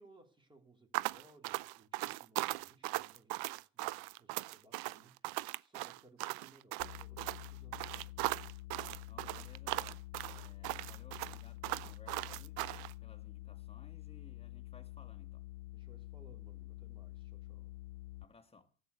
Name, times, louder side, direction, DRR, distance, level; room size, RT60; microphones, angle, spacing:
voice 1, 0.0-8.4 15.7-17.8, right 2 dB, 10° right, 3.2 m, -64 dB
sound 1, 0.9-12.9, right 20 dB, 60° right, 0.6 m, -39 dB
sound 2, 6.8-18.2, left 18 dB, 75° left, 0.7 m, -48 dB
voice 2, 9.1-15.5 18.2-18.7, left 4 dB, 15° left, 1.8 m, -61 dB
13.5 x 8.9 x 8.2 m
supercardioid pair, 115°, 41 cm